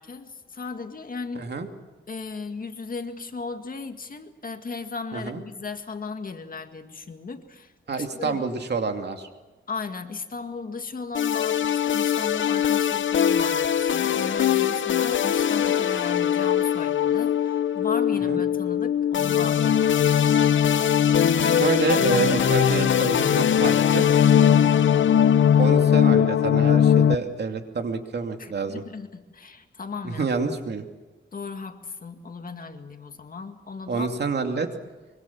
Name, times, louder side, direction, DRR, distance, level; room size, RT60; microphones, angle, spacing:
voice 1, 0.0-1.5 2.1-7.7 8.1-8.4 9.7-20.4 28.4-30.6 31.3-34.1, left 4 dB, 45° left, 6 dB, 2.0 m, -36 dB
voice 2, 1.4-1.7 5.1-5.4 7.9-9.3 18.3-18.4 21.4-24.0 25.6-28.8 30.2-30.8 33.9-34.7, right 4 dB, 60° right, 5 dB, 2.6 m, -27 dB
sound 1, 11.1-27.2, left 9 dB, 75° left, 0.7 m, -20 dB
24.0 x 24.0 x 7.2 m, 1.2 s
wide cardioid pair, 120°, 20 cm